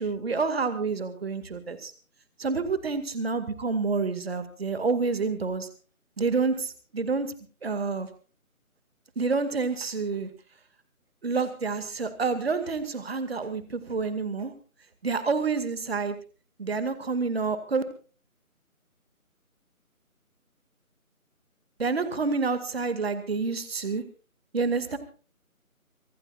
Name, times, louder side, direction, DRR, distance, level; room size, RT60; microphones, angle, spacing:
voice 1, 0.0-1.9 2.4-5.7 6.2-7.3 7.6-8.1 9.2-10.3 11.2-14.5 15.0-16.2 16.6-17.8 21.8-24.0 24.5-25.0, right 4 dB, 45° right, 10 dB, 2.3 m, -28 dB
25.5 x 17.0 x 2.5 m, 0.37 s
figure-of-eight pair, 160°, 44 cm